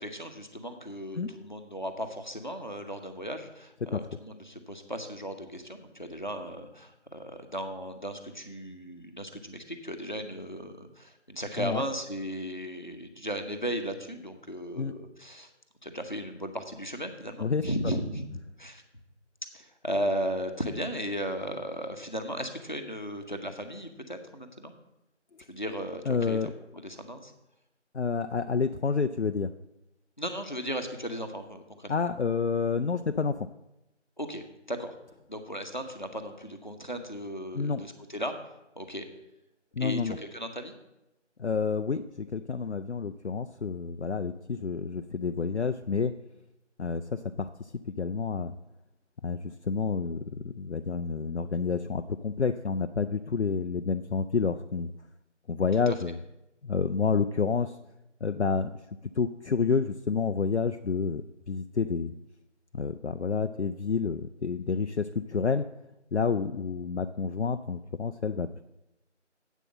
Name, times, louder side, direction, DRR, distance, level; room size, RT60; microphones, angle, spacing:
voice 1, 0.0-15.5 15.8-18.3 18.6-18.8 19.5-24.8 25.5-27.3 30.2-31.9 34.2-34.9 35.3-38.3 38.8-39.0 39.8-40.7 55.9-56.0, equal, 40° left, 6 dB, 0.9 m, -36 dB
voice 2, 26.1-26.5 27.9-29.5 31.9-33.5 37.5-37.8 39.8-40.2 41.4-46.1 46.8-48.6 49.2-54.9 55.5-56.1 56.6-57.8 58.2-58.7 59.2-62.1 62.7-65.6 66.1-68.6, left 5 dB, 65° left, 9 dB, 0.5 m, -29 dB
8.2 x 5.7 x 7.4 m, 0.92 s
figure-of-eight pair, 180°, 36 cm